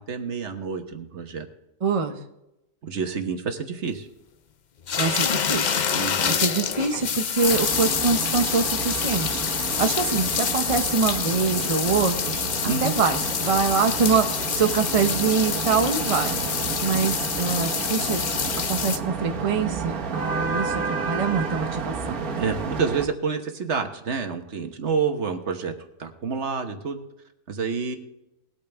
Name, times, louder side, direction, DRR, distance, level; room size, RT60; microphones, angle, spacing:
voice 1, 0.0-1.5 2.8-4.1 5.9-6.5 12.7-12.9 22.4-25.7 26.0-27.0 27.5-28.0, right 5 dB, 50° right, 6 dB, 1.3 m, -28 dB
voice 2, 1.8-2.2 5.0-5.8 6.3-12.4 12.6-16.3 16.8-18.2 18.7-22.2, right 5 dB, 35° right, 6 dB, 0.6 m, -24 dB
sound 1, 4.9-19.0, left 7 dB, 70° left, 0.4 m, -27 dB
sound 2, 7.4-23.1, right 5 dB, 75° right, 1.8 m, -31 dB
20.5 x 8.6 x 3.4 m, 0.91 s
omnidirectional pair, 1.6 m